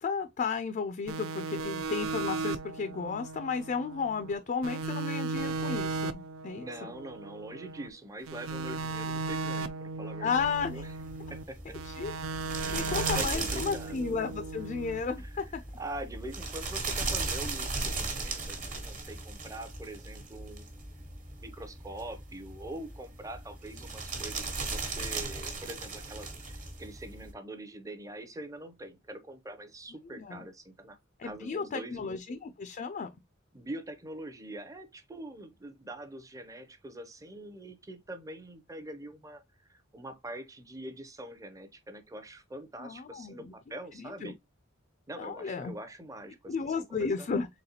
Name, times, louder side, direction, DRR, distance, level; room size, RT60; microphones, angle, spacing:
voice 1, 0.0-6.9 10.2-10.8 11.8-12.1 12.7-15.6 30.0-30.4 31.2-33.1 42.8-43.5 44.0-44.3 45.2-45.8 46.5-47.5, left 5 dB, 40° left, 0.4 m, -33 dB
sound 1, 1.1-4.3 4.6-7.9 8.3-11.4 11.7-15.0, right 3 dB, 85° right, 0.4 m, -36 dB
voice 2, 6.6-10.9 11.3-11.8 12.6-14.1 15.2-15.4 15.8-20.7 21.4-32.2 33.5-44.4 45.1-47.3, right 1 dB, 15° right, 0.6 m, -44 dB
sound 2, 10.4-27.3, right 3 dB, 40° right, 1.2 m, -37 dB
3.9 x 3.4 x 2.8 m
head